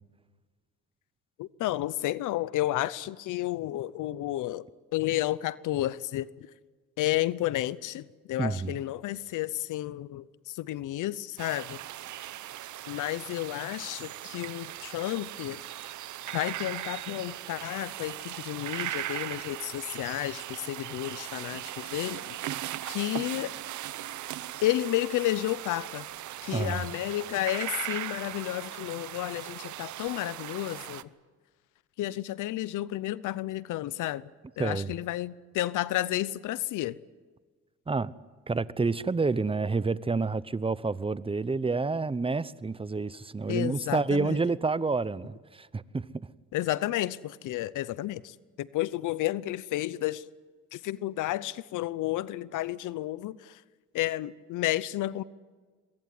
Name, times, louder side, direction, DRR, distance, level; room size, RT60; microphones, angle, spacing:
voice 1, 1.4-4.7 4.9-6.5 7.0-11.8 12.9-15.6 16.3-22.4 22.9-23.5 24.6-26.1 26.4-31.1 32.0-34.3 34.6-37.0 43.5-44.4 46.5-50.2 50.7-53.6 53.9-55.2, left 15 dB, 85° left, 0.8 m, -31 dB
voice 2, 8.4-8.7 26.5-26.8 34.6-34.9 37.9-38.1 38.5-46.1, right 4 dB, 20° right, 0.9 m, -29 dB
sound 1, 11.4-31.0, right 13 dB, 70° right, 0.9 m, -39 dB
23.5 x 22.5 x 9.5 m
cardioid pair, 90°, 30 cm